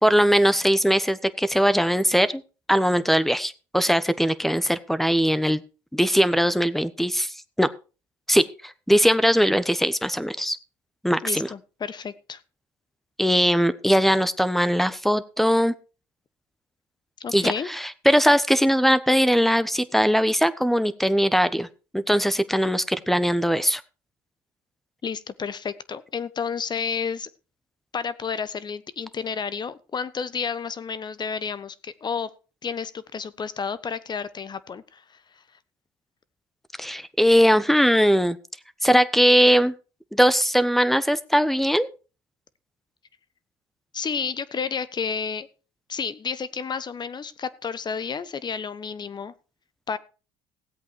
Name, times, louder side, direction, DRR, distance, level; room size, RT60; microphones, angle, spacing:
voice 1, 0.0-2.4 2.7-5.6 5.9-7.7 8.3-10.6 11.0-11.5 13.2-15.7 17.3-21.7 21.9-23.8 36.8-38.4 38.8-39.7 40.1-41.9, equal, ahead, 15 dB, 1.1 m, -20 dB
voice 2, 11.2-12.4 17.2-17.7 25.0-27.3 27.9-32.3 32.6-35.4 43.9-45.5 45.9-49.3 49.9-50.0, left 6 dB, 35° left, 16 dB, 1.2 m, -31 dB
16.5 x 8.3 x 4.7 m, 0.34 s
hypercardioid pair, 70°, 12 cm